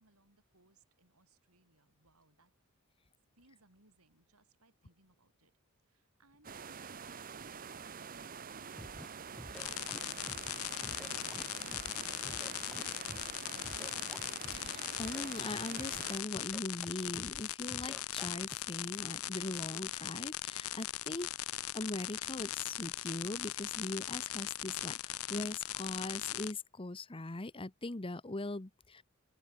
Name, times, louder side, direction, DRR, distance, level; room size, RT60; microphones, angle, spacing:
voice 1, 0.0-2.5 3.4-7.2, right 2 dB, 80° right, 7.2 m, -69 dB
sound 1, 6.4-16.2, right 6 dB, 40° right, 0.9 m, -47 dB
Scratching (performance technique), 8.8-9.1 9.3-10.5 10.8-11.9 12.2-13.3 13.6-14.7 15.0-16.0 16.3-16.9 17.2-17.4 17.7-18.5, equal, ahead, 0.3 m, -49 dB
sound 2, 9.5-26.5, left 13 dB, 75° left, 0.9 m, -40 dB
voice 2, 14.5-29.0, left 2 dB, 25° left, 0.9 m, -41 dB
head